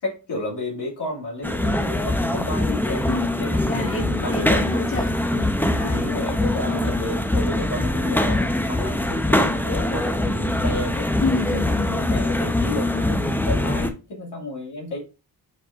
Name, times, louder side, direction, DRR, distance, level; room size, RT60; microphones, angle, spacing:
voice 1, 0.0-3.1 3.4-3.9 4.2-4.6 5.7-11.1 11.5-15.0, left 2 dB, 70° left, -3 dB, 2.4 m, -32 dB
sound 1, 1.4-13.9, left 1 dB, 5° left, 0.8 m, -23 dB
voice 2, 3.6-6.1 6.6-6.8 11.2-12.0, left 3 dB, 30° left, -1 dB, 1.8 m, -29 dB
4.7 x 4.5 x 2.5 m, 0.30 s
cardioid pair, 60°, 42 cm